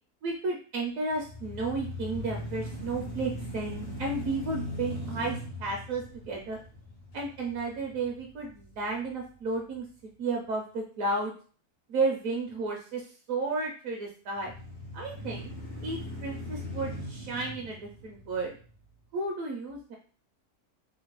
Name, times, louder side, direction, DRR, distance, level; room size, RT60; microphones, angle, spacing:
voice 1, 0.2-6.6 7.1-9.8 10.2-11.3 11.9-13.0 13.3-14.5 14.9-15.5 15.8-18.5 19.1-20.0, right 3 dB, 70° right, 1 dB, 0.9 m, -33 dB
sound 1, 1.1-9.2 9.7-9.8 14.3-18.8, left 1 dB, 80° left, 1.4 m, -40 dB
3.6 x 2.1 x 2.9 m, 0.41 s
omnidirectional pair, 1.7 m